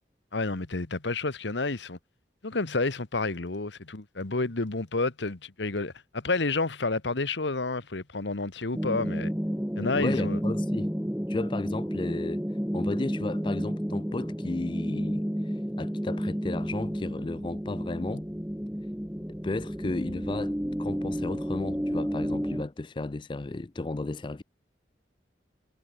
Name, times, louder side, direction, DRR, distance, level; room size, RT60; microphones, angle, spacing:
voice 1, 0.3-2.0 2.4-9.3 9.8-10.4, left 3 dB, 85° left, 1.4 m, -30 dB
sound 1, 8.7-22.6, equal, 5° right, 1.5 m, -31 dB
voice 2, 9.8-10.9 11.3-12.4 12.7-18.2 19.4-24.4, left 2 dB, 25° left, 0.4 m, -34 dB
head